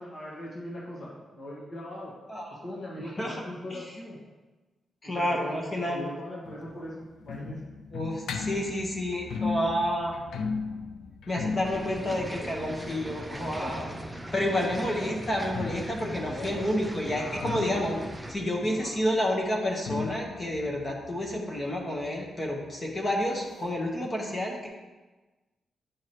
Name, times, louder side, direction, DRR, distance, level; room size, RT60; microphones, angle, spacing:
voice 1, 0.0-2.1 2.5-4.2 5.0-7.6 13.6-14.0 14.5-15.2 16.2-17.8 18.3-18.9, left 1 dB, 45° left, -5 dB, 1.4 m, -40 dB
voice 2, 3.0-3.4 3.7-3.8 5.0-6.1 7.9-10.2 11.3-13.9 14.3-18.0 18.3-24.7, left 1 dB, 25° left, 0 dB, 1.0 m, -30 dB
sound 1, 6.4-14.1 15.3-22.7 22.9-23.0 23.3-23.4 24.0-24.1, left 5 dB, 85° left, 0.4 m, -37 dB
sound 2, 11.6-18.3, right 1 dB, 5° right, 0.5 m, -40 dB
9.3 x 4.7 x 2.9 m, 1.2 s
wide cardioid pair, 140°, 0 cm